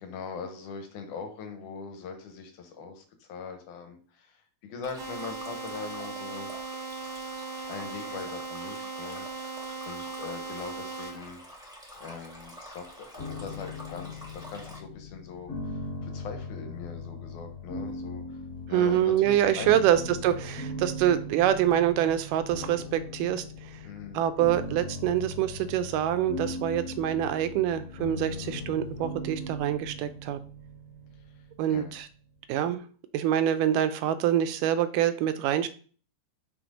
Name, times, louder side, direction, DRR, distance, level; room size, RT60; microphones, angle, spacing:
voice 1, 0.0-6.5 7.7-9.3 9.5-11.4 12.0-15.7 16.0-18.4 18.7-19.8 23.8-24.2 31.7-32.0, left 5 dB, 70° left, 5 dB, 2.5 m, -41 dB
Stream, 4.8-14.8, equal, 5° right, 0.7 m, -47 dB
sound 1, 5.0-11.1, right 4 dB, 65° right, 1.3 m, -38 dB
sound 2, 13.2-32.1, left 2 dB, 40° left, 2.3 m, -39 dB
voice 2, 18.7-23.8 24.1-30.4 31.6-32.1 32.5-32.8 33.1-35.7, right 11 dB, 80° right, 11 dB, 2.1 m, -26 dB
6.0 x 4.2 x 5.1 m, 0.41 s
omnidirectional pair, 3.9 m